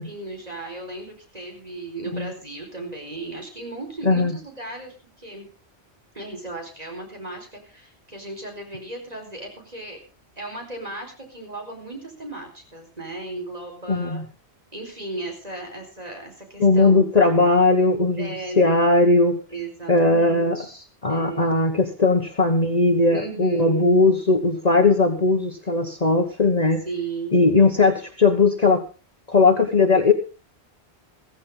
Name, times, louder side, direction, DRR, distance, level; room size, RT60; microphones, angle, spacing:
voice 1, 0.0-5.5 6.1-10.0 10.4-14.2 14.7-17.1 18.2-18.8 19.5-21.6 23.1-24.0 26.8-27.7, right 2 dB, 35° right, 2 dB, 4.6 m, -35 dB
voice 2, 13.9-14.2 16.6-18.3 18.6-19.4 19.9-20.6 21.0-26.8 27.3-28.8 29.3-30.1, left 3 dB, 40° left, 6 dB, 1.3 m, -18 dB
15.5 x 15.0 x 3.7 m, 0.34 s
omnidirectional pair, 1.1 m